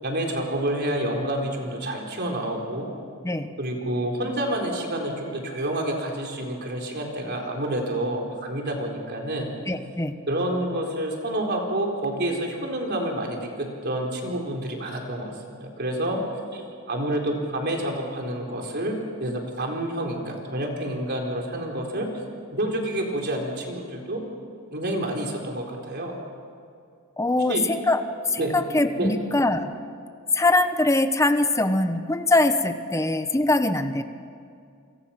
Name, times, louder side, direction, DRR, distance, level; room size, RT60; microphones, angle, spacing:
voice 1, 0.0-2.9 3.6-9.5 10.3-16.2 16.5-16.6 16.9-22.1 22.5-24.2 24.7-26.2 27.5-27.6 28.4-28.6 29.0-29.1, right 1 dB, 50° right, 1 dB, 4.2 m, -28 dB
voice 2, 9.7-10.2 27.2-28.0 28.3-29.7 30.3-34.0, left 2 dB, 15° left, 9 dB, 1.0 m, -22 dB
28.0 x 25.5 x 5.9 m, 2.4 s
head